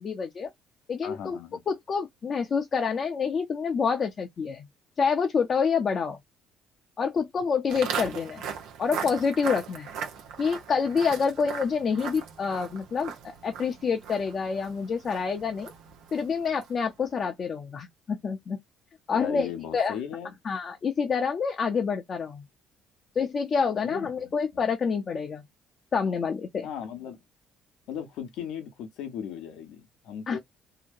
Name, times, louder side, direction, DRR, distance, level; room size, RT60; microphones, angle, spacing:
voice 1, 0.0-0.5 0.9-1.4 1.7-4.7 5.0-6.2 7.0-8.5 8.8-9.9 10.4-15.7 16.1-18.6 19.1-20.0 20.4-22.4 23.2-25.4 25.9-26.7 30.3-30.4, left 5 dB, 45° left, 0.7 m, -27 dB
voice 2, 1.0-1.6 19.1-20.4 23.8-24.1 26.6-27.2 27.9-30.4, left 8 dB, 75° left, 0.9 m, -37 dB
Walk footsteps, 7.7-16.9, right 7 dB, 75° right, 0.7 m, -38 dB
2.9 x 2.1 x 2.5 m
supercardioid pair, 65°, 0 cm